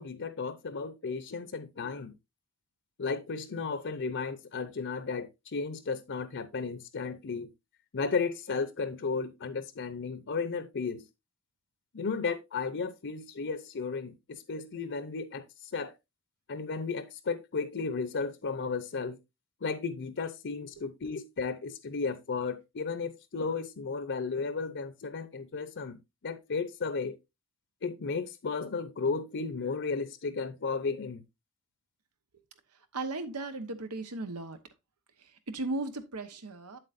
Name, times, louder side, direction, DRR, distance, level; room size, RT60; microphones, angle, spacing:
voice 1, 0.0-2.1 3.0-7.5 7.9-11.0 11.9-15.4 15.7-15.9 16.5-19.2 19.6-26.0 26.2-27.2 27.8-31.2, left 4 dB, 55° left, 0.7 m, -34 dB
voice 2, 32.9-34.6 35.5-36.8, right 2 dB, 90° right, 1.1 m, -36 dB
8.1 x 7.7 x 2.5 m
head